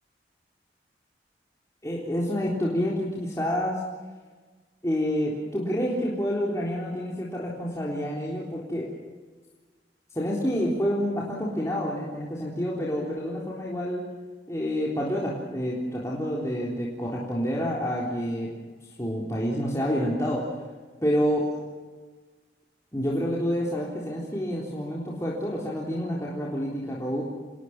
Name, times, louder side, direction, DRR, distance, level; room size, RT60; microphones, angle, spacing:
voice 1, 1.8-3.8 4.8-8.9 10.1-14.1 14.5-18.5 19.0-20.5 21.0-21.6 22.9-27.2, equal, 15° left, -5 dB, 3.8 m, -28 dB
27.5 x 21.5 x 6.0 m, 1.4 s
head